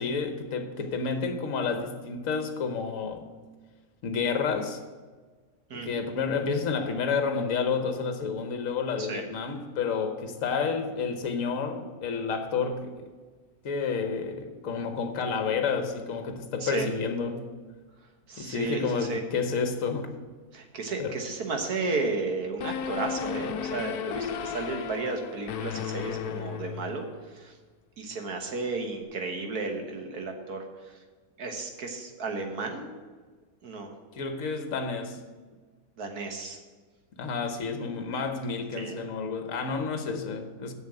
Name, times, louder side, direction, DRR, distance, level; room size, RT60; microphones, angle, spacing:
voice 1, 0.0-3.3 4.0-4.8 5.7-13.1 13.6-17.4 18.4-20.1 21.0-21.2 34.2-35.2 37.2-40.7, left 5 dB, 65° left, 1.3 m, -30 dB
voice 2, 18.3-19.2 20.5-27.5 28.0-30.6 31.4-32.9 33.6-33.9 36.0-36.6 38.8-39.0, right 3 dB, 80° right, 1.8 m, -33 dB
sound 1, 22.6-27.3, left 8 dB, 90° left, 1.1 m, -34 dB
7.2 x 6.8 x 7.8 m
omnidirectional pair, 1.6 m